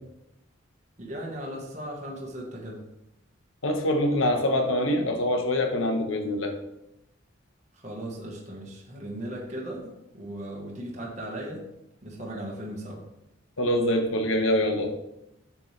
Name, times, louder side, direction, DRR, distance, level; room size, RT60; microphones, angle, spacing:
voice 1, 1.0-2.8 7.7-11.6 12.0-13.0, right 1 dB, 35° right, -2 dB, 1.4 m, -37 dB
voice 2, 3.6-6.5 13.6-14.9, left 1 dB, 70° left, 5 dB, 1.1 m, -24 dB
7.3 x 6.9 x 3.3 m, 0.86 s
head